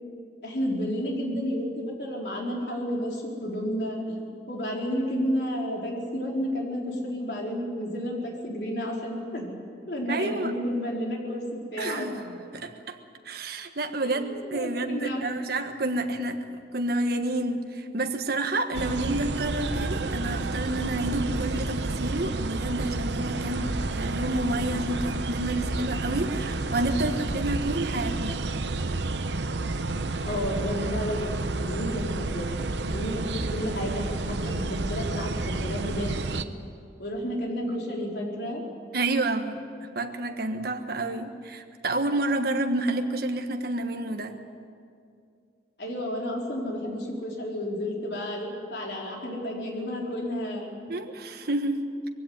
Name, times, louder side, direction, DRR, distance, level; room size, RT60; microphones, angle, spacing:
voice 1, 0.4-9.5 9.9-12.1 14.0-15.3 30.2-32.5 32.9-33.2 33.5-36.1 37.0-38.6 45.8-50.7, equal, 65° left, -1 dB, 4.3 m, -31 dB
voice 2, 10.1-10.5 11.8-13.0 13.2-28.4 38.9-39.6 39.9-44.4 50.9-51.8, right 2 dB, 60° right, 6 dB, 1.4 m, -29 dB
sound 1, 18.7-36.4, right 2 dB, 75° right, 0.9 m, -30 dB
21.5 x 16.0 x 9.6 m, 2.3 s
head